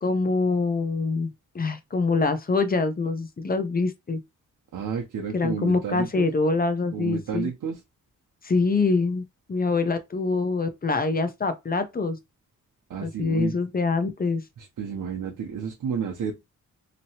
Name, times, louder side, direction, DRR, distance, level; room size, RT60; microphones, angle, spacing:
voice 1, 0.0-4.2 5.3-7.5 8.4-9.2 9.5-12.2 13.0-14.4, left 3 dB, 30° left, 0.6 m, -25 dB
voice 2, 4.7-6.3 6.9-7.8 12.9-13.5 14.6-16.3, right 7 dB, 75° right, 0.8 m, -31 dB
3.0 x 2.7 x 2.8 m
wide cardioid pair, 105°, 31 cm